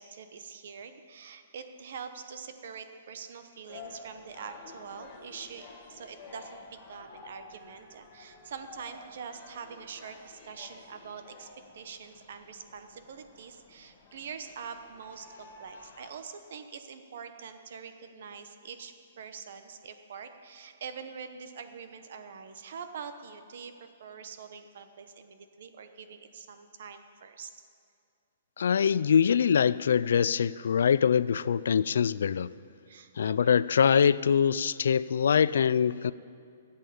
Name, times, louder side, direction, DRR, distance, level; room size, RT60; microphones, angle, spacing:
voice 1, 0.0-27.5 32.9-33.7, right 6 dB, 60° right, 8 dB, 1.0 m, -44 dB
sound 1, 3.7-16.1, left 3 dB, 25° left, 2.1 m, -51 dB
voice 2, 28.6-32.5 33.2-36.1, left 7 dB, 80° left, 18 dB, 0.3 m, -24 dB
13.0 x 8.3 x 7.0 m, 2.3 s
hypercardioid pair, 165°, 0 cm